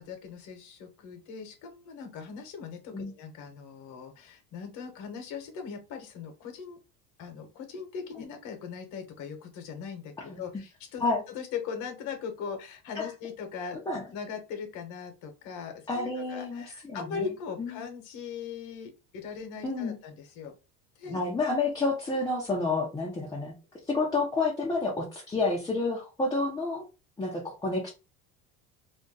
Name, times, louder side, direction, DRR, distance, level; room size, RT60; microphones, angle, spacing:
voice 1, 0.0-6.8 7.2-13.8 14.1-20.5 21.0-21.2 24.7-24.8, left 6 dB, 60° left, 5 dB, 1.1 m, -40 dB
voice 2, 15.9-17.3 17.6-17.8 19.6-20.0 21.1-23.6 23.9-26.8 27.2-27.9, left 3 dB, 10° left, -3 dB, 0.6 m, -29 dB
2.6 x 2.2 x 3.7 m, 0.30 s
cardioid pair, 145°, 33 cm